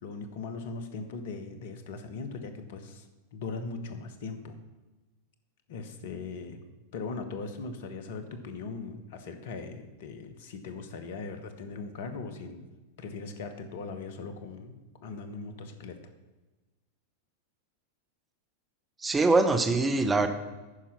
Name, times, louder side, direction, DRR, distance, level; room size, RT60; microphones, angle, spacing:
voice 1, 0.0-4.5 5.7-6.6 6.9-12.7 13.0-14.7 15.0-16.0, left 4 dB, 55° left, 8 dB, 1.0 m, -39 dB
voice 2, 19.0-20.3, right 3 dB, 15° right, 7 dB, 0.7 m, -23 dB
9.8 x 5.7 x 5.7 m, 1.2 s
figure-of-eight pair, 90°, 0 cm